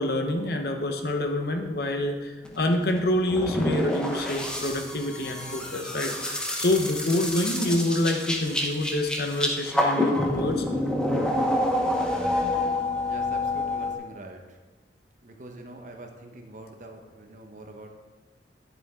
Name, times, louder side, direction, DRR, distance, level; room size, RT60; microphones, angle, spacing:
voice 1, 0.0-10.6, left 1 dB, 60° left, 4 dB, 1.0 m, -27 dB
sound 1, 2.5-14.0, left 1 dB, 5° left, 0.9 m, -28 dB
voice 2, 13.0-14.6 15.2-17.9, right 2 dB, 45° right, 3 dB, 1.0 m, -44 dB
10.5 x 7.1 x 3.6 m, 1.3 s
head